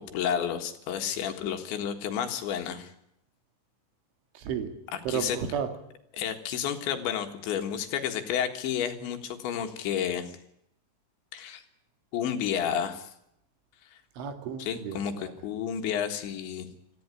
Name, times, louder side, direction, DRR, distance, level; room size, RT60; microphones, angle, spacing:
voice 1, 0.1-2.9 4.9-5.4 6.1-10.3 11.3-11.6 12.1-13.1 14.6-16.7, left 9 dB, 70° left, 6 dB, 3.7 m, -31 dB
voice 2, 4.4-4.7 5.1-5.7 14.2-15.3, right 8 dB, 70° right, 8 dB, 4.4 m, -33 dB
26.5 x 14.5 x 9.8 m, 0.79 s
omnidirectional pair, 5.8 m